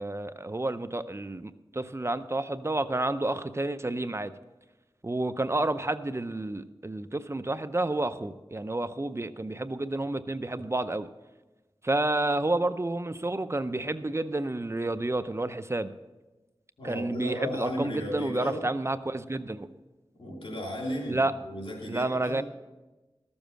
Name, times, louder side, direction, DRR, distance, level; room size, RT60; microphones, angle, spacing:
voice 1, 0.0-4.3 5.0-11.1 11.8-15.9 16.8-19.7 21.1-21.3 21.9-22.4, right 2 dB, 30° right, 12 dB, 0.6 m, -30 dB
voice 2, 16.8-18.6 20.2-22.4, equal, 90° left, -1 dB, 3.2 m, -35 dB
13.5 x 7.1 x 6.4 m, 1.1 s
cardioid pair, 40°, 9 cm